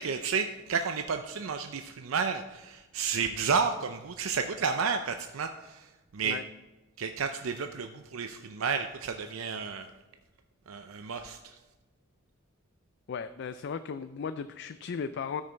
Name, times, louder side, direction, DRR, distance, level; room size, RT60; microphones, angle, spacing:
voice 1, 0.0-5.8 6.1-6.4 7.0-9.9 10.7-11.5, right 5 dB, 90° right, 6 dB, 0.6 m, -31 dB
voice 2, 13.1-15.4, left 6 dB, 55° left, 11 dB, 0.4 m, -36 dB
13.0 x 6.5 x 4.5 m, 1.1 s
head